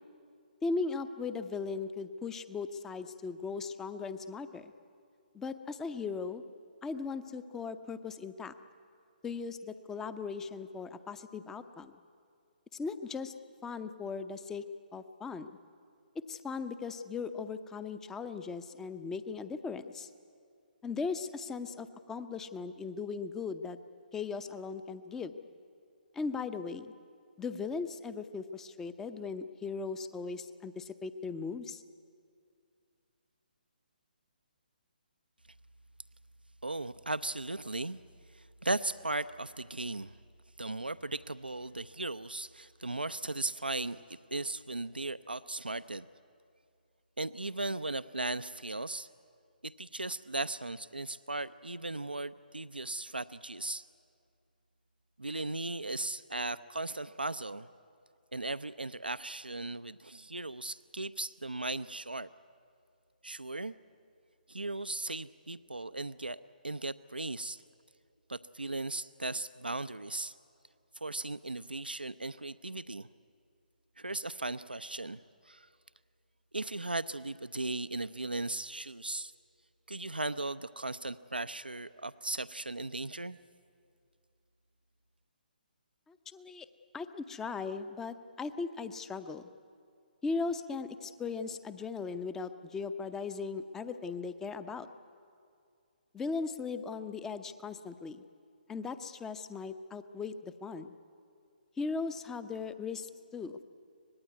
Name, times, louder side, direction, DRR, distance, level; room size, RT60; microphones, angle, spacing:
voice 1, 0.6-4.7 5.3-6.4 6.8-8.5 9.2-12.0 12.7-13.3 13.6-14.6 14.9-15.6 16.1-20.1 20.8-23.8 24.1-25.4 26.1-26.9 27.4-31.8 86.1-86.7 86.9-89.5 90.2-94.9 96.1-98.2 98.7-100.9 101.8-103.6, left 4 dB, 10° left, 12 dB, 0.7 m, -38 dB
voice 2, 36.6-38.0 38.3-40.1 40.6-44.0 44.3-46.1 47.2-49.1 49.6-53.8 55.2-57.7 58.3-62.3 63.2-63.8 64.5-67.6 68.3-70.3 71.0-73.1 74.0-75.2 75.4-75.7 76.5-79.3 79.9-83.4, right 2 dB, 80° right, 14 dB, 0.6 m, -37 dB
24.5 x 19.5 x 9.5 m, 2.3 s
figure-of-eight pair, 135°, 5 cm